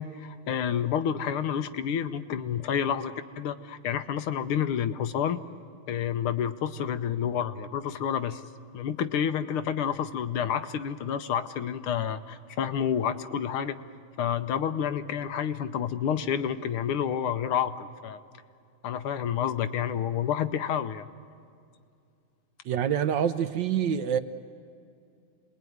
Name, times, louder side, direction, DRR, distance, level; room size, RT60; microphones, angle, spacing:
voice 1, 0.0-5.4 5.9-8.4 8.7-13.8 14.2-18.2 18.8-21.0, left 8 dB, 85° left, 10 dB, 1.7 m, -29 dB
voice 2, 22.6-24.2, right 8 dB, 65° right, 10 dB, 1.3 m, -26 dB
27.5 x 20.5 x 9.4 m, 2.4 s
omnidirectional pair, 2.4 m